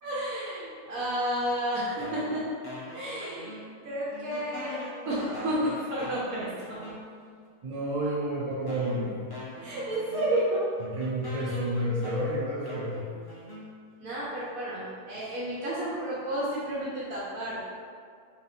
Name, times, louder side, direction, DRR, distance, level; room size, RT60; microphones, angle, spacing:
voice 1, 0.0-2.4 2.9-4.8 5.0-6.8 9.6-10.6 14.0-17.6, right 1 dB, 70° right, -9 dB, 1.2 m, -31 dB
sound 1, 2.0-3.8 4.1-7.4 8.1-8.2 8.7-14.1, left 1 dB, 25° left, 0.5 m, -43 dB
voice 2, 7.6-9.2 10.8-12.9, right 1 dB, 35° right, -5 dB, 0.7 m, -30 dB
3.5 x 2.8 x 4.2 m, 2.2 s
omnidirectional pair, 1.5 m